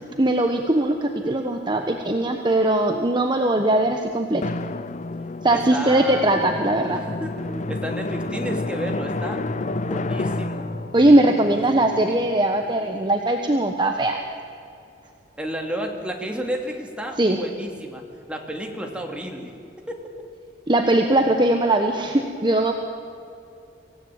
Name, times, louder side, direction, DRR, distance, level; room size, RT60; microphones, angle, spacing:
voice 1, 0.2-4.4 5.4-7.0 10.9-14.2 17.2-17.4 20.7-22.7, right 1 dB, 25° right, 4 dB, 1.2 m, -20 dB
Drum, 4.4-12.7, left 2 dB, 40° left, 0.7 m, -30 dB
voice 2, 5.5-7.3 7.7-9.4 9.8-10.7 11.2-11.6 15.4-18.0 18.3-19.5 19.8-20.0, equal, 5° right, 1 dB, 2.7 m, -32 dB
sound 1, 8.5-13.0, right 1 dB, 55° right, 4.6 m, -42 dB
25.5 x 17.0 x 8.8 m, 2.5 s
head